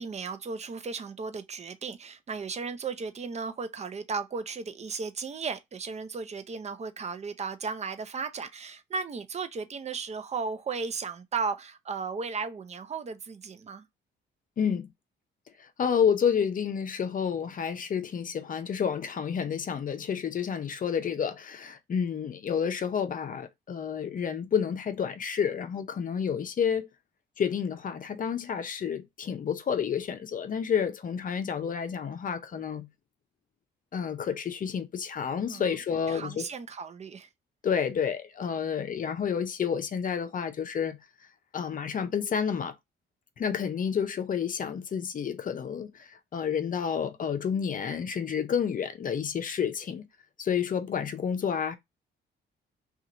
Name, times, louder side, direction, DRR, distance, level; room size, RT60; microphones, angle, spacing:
voice 1, 0.0-13.9 35.5-35.8 36.1-37.3, right 5 dB, 35° right, 0.6 m, -35 dB
voice 2, 14.6-14.9 15.8-26.9 27.4-32.9 33.9-36.5 37.6-41.0 41.5-42.7 43.4-45.9 46.3-50.1 50.4-51.7, left 7 dB, 45° left, 0.6 m, -30 dB
2.9 x 2.4 x 3.8 m
cardioid pair, 90°, 20 cm